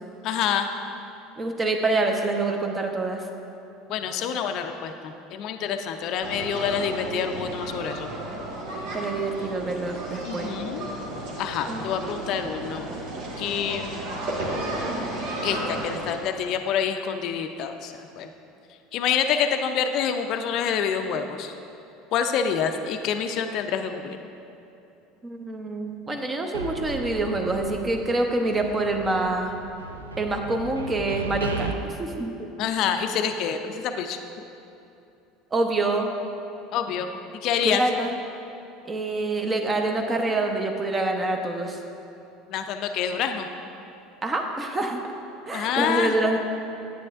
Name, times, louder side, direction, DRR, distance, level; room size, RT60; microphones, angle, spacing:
voice 1, 0.2-0.7 3.9-8.1 10.2-10.9 11.4-12.9 13.4-13.9 15.4-18.3 18.9-21.5 22.1-24.2 32.6-34.2 36.7-37.1 37.4-37.8 42.5-43.5 45.5-46.2, left 8 dB, 55° left, 6 dB, 0.4 m, -27 dB
voice 2, 1.4-3.3 8.9-10.5 11.7-12.2 25.2-29.5 30.2-32.5 35.5-36.1 37.6-38.2 38.8-41.8 44.2-45.0 45.5-46.4, right 2 dB, 25° right, 4 dB, 0.8 m, -26 dB
sound 1, 6.2-16.1, right 1 dB, 65° right, 1.3 m, -33 dB
sound 2, 26.5-28.2 28.5-31.7, right 3 dB, 90° right, 0.4 m, -36 dB
9.5 x 8.3 x 2.5 m, 2.8 s
hypercardioid pair, 70°, 0 cm